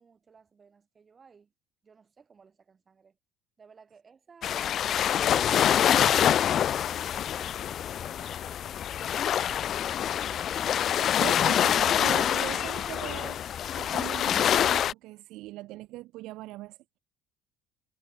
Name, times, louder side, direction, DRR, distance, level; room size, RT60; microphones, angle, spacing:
voice 1, 0.0-1.5 1.8-3.2 3.6-4.8 7.0-9.5, right 5 dB, 25° right, 2.9 m, -57 dB
sound 1, 4.4-14.9, left 10 dB, 40° left, 0.3 m, -26 dB
voice 2, 11.2-13.4 13.8-17.0, right 18 dB, 65° right, 0.5 m, -40 dB
cardioid pair, 130°, 0 cm